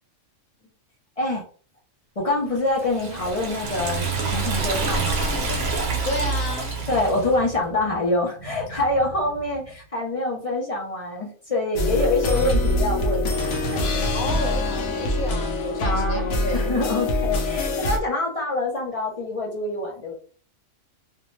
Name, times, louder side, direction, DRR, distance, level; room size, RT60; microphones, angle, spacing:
voice 1, 2.2-5.4 6.9-14.0 15.8-20.1, left 2 dB, 40° left, -2 dB, 0.5 m, -26 dB
Liquid, 2.7-7.4, right 4 dB, 55° right, 0.9 m, -27 dB
sound 1, 3.6-9.9, right 1 dB, 80° right, 1.1 m, -41 dB
voice 2, 6.1-6.7 14.1-16.7, left 1 dB, 85° left, 3 dB, 1.2 m, -31 dB
sound 2, 11.8-18.0, left 2 dB, 65° left, 0.9 m, -24 dB
2.6 x 2.1 x 3.1 m, 0.41 s
omnidirectional pair, 1.4 m